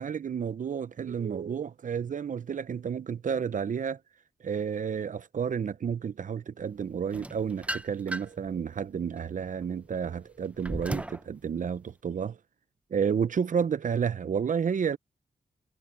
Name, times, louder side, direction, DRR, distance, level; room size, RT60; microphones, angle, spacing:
voice 1, 0.0-4.0 4.4-12.4 12.9-15.0, right 7 dB, 60° right, 0.8 m, -31 dB
sound 1, 7.1-8.5 9.0-11.3, right 1 dB, 10° right, 0.8 m, -36 dB
cardioid pair, 65°, 15 cm